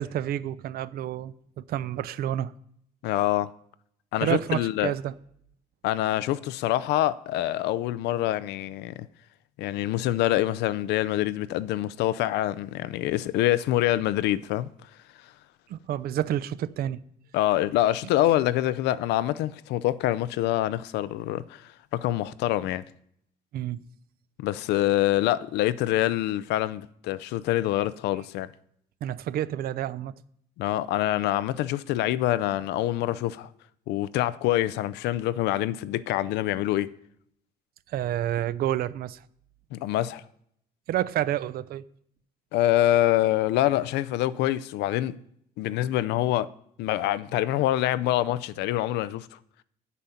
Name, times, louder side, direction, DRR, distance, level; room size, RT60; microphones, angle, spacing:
voice 1, 0.0-2.5 4.2-5.1 15.7-17.0 23.5-23.8 29.0-30.1 37.9-39.2 40.9-41.8, right 12 dB, 65° right, 0.6 m, -29 dB
voice 2, 3.0-3.5 4.1-4.9 5.8-9.1 9.6-14.7 17.3-22.8 24.4-28.5 30.6-33.5 33.9-36.9 39.7-40.2 42.5-45.2 45.6-46.5 46.8-49.4, left 14 dB, 85° left, 0.5 m, -25 dB
9.0 x 8.3 x 5.7 m
cardioid pair, 110°, 17 cm